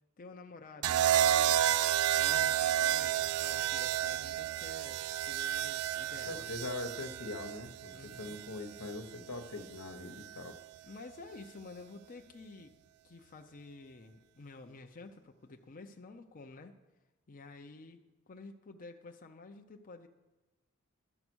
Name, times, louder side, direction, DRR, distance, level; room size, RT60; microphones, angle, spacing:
voice 1, 0.2-1.8 2.1-6.7 7.9-8.4 10.8-12.7 13.0-16.7 17.3-18.0 18.3-20.1, left 3 dB, 40° left, 4 dB, 0.6 m, -51 dB
sound 1, 0.8-9.0 10.2-10.6, right 11 dB, 80° right, 0.3 m, -31 dB
voice 2, 6.3-10.6, left 2 dB, 90° left, 6 dB, 1.2 m, -42 dB
12.0 x 8.0 x 6.2 m, 1.1 s
head